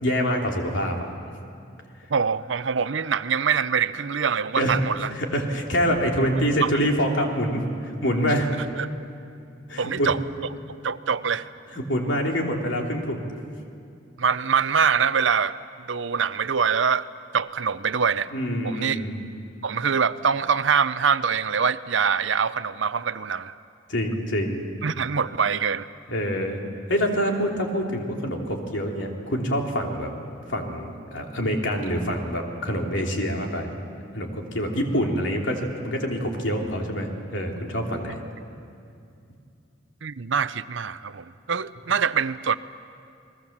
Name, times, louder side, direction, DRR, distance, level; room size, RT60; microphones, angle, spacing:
voice 1, 0.0-1.0 4.6-4.8 5.1-8.5 9.7-10.1 11.7-13.3 18.3-19.2 23.9-24.6 26.1-26.6 26.9-30.1 30.5-33.7 34.1-38.2, equal, 70° left, 1 dB, 3.2 m, -26 dB
voice 2, 2.1-5.1 6.6-6.7 8.8-8.9 9.8-10.2 10.8-11.5 14.2-15.6 15.9-17.1 17.3-18.3 18.6-19.0 19.6-23.6 24.8-25.9 40.0-42.6, right 6 dB, 70° right, 14 dB, 0.7 m, -24 dB
30.0 x 20.5 x 7.3 m, 2.5 s
head